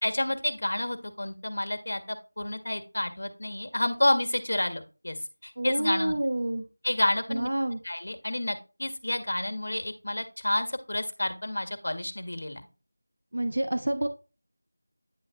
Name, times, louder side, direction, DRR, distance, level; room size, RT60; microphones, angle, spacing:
voice 1, 0.0-5.2 5.4-6.1 6.8-7.5 7.8-12.6, left 1 dB, 65° left, 9 dB, 1.3 m, -29 dB
voice 2, 5.6-6.7 7.3-7.8 13.3-14.1, right 1 dB, 75° right, 6 dB, 1.1 m, -28 dB
9.4 x 3.3 x 4.7 m, 0.32 s
figure-of-eight pair, 175°, 0 cm